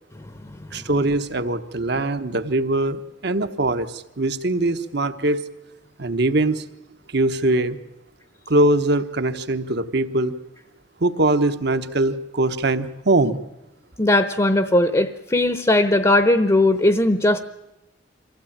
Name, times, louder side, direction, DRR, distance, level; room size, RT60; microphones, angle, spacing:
voice 1, 0.7-5.4 6.0-6.6 7.1-7.8 8.5-10.3 11.0-13.4, right 2 dB, 60° right, 10 dB, 1.2 m, -22 dB
voice 2, 14.0-17.4, left 1 dB, 20° left, 11 dB, 0.8 m, -18 dB
24.0 x 15.5 x 8.8 m, 0.98 s
head